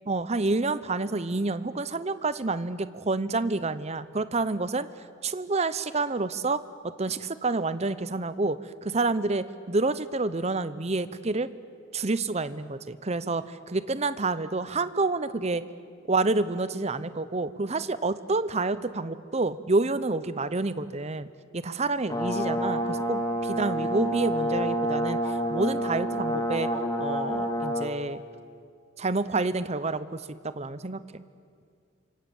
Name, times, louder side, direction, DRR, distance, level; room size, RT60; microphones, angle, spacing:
voice 1, 0.1-4.9 5.2-6.6 7.0-11.5 11.9-15.6 16.1-21.3 21.5-26.7 27.0-28.2 29.0-31.2, right 3 dB, 30° right, 14 dB, 0.8 m, -28 dB
Brass instrument, 22.1-27.9, equal, 20° left, 2.6 m, -28 dB
28.5 x 25.5 x 7.1 m, 2.2 s
head